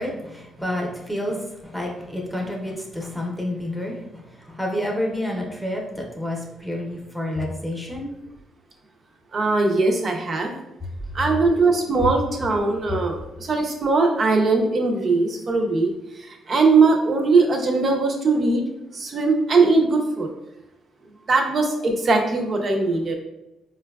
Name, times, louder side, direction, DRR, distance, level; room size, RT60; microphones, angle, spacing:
voice 1, 0.0-8.1, left 1 dB, ahead, -1 dB, 0.7 m, -29 dB
voice 2, 9.3-10.5 11.1-18.6 18.9-20.3 21.3-23.1, right 3 dB, 45° right, 2 dB, 0.6 m, -20 dB
4.4 x 2.3 x 2.3 m, 0.95 s
cardioid pair, 90°, 0 cm